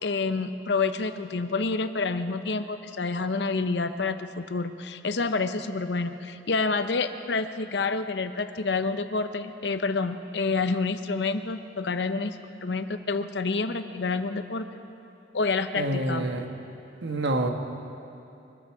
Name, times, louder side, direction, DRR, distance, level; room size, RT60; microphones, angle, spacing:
voice 1, 0.0-14.6 15.3-16.2, left 4 dB, 70° left, 10 dB, 0.8 m, -28 dB
voice 2, 15.8-16.4 17.0-17.5, right 1 dB, 80° right, 4 dB, 1.3 m, -27 dB
23.5 x 13.0 x 4.8 m, 2.7 s
head